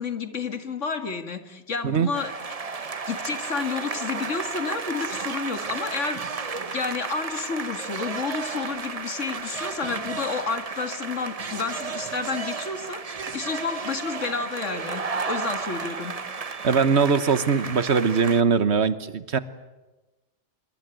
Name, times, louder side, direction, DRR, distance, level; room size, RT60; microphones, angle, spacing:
voice 1, 0.0-2.3 2.8-16.2, left 5 dB, 85° left, 8 dB, 2.2 m, -31 dB
sound 1, 2.1-18.4, right 4 dB, 35° right, 0.9 m, -33 dB
voice 2, 16.6-19.4, right 5 dB, 65° right, 13 dB, 1.4 m, -21 dB
25.0 x 23.5 x 9.1 m, 1.1 s
omnidirectional pair, 1.2 m